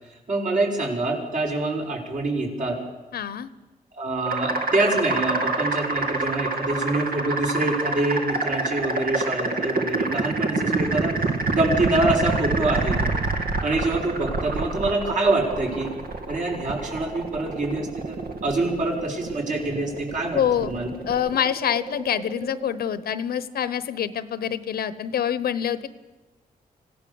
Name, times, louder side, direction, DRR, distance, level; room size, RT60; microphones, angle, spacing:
voice 1, 0.3-2.8 4.0-11.2 11.5-13.0 13.6-15.9 16.3-20.9, right 2 dB, 55° right, 0 dB, 5.7 m, -25 dB
voice 2, 3.1-3.5 20.3-20.7 21.1-25.9, left 9 dB, 90° left, 15 dB, 1.1 m, -26 dB
sound 1, 4.3-23.0, right 3 dB, 75° right, 2.0 m, -27 dB
26.0 x 17.0 x 7.2 m, 1.2 s
wide cardioid pair, 115°, 16 cm